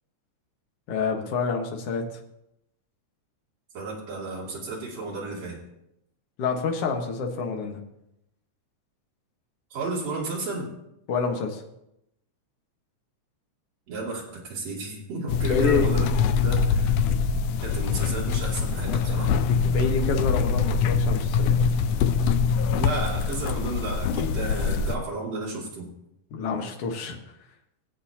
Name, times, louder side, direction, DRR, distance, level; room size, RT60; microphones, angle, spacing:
voice 1, 0.9-2.0 6.4-7.8 11.1-11.6 15.4-15.8 19.7-21.5 26.3-27.2, left 4 dB, 55° left, 2 dB, 2.1 m, -27 dB
voice 2, 3.7-5.6 9.7-10.7 13.9-16.1 16.4-17.0 17.6-19.3 22.6-25.9, right 3 dB, 55° right, -4 dB, 3.8 m, -33 dB
sound 1, 15.3-25.0, left 6 dB, 80° left, 1.5 m, -24 dB
20.5 x 8.2 x 2.9 m, 0.84 s
omnidirectional pair, 3.4 m